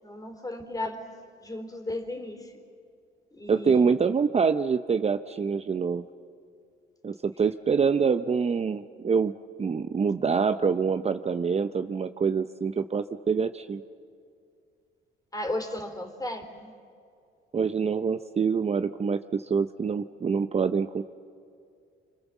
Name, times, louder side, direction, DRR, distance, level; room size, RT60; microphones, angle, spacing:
voice 1, 0.0-1.1 1.4-2.5 3.3-4.0 15.3-16.7, left 1 dB, 20° left, 5 dB, 3.7 m, -35 dB
voice 2, 3.5-6.0 7.0-9.3 9.6-13.8 17.5-21.0, right 5 dB, 30° right, 10 dB, 0.7 m, -25 dB
26.5 x 25.0 x 7.3 m, 2.4 s
cardioid pair, 90°, 20 cm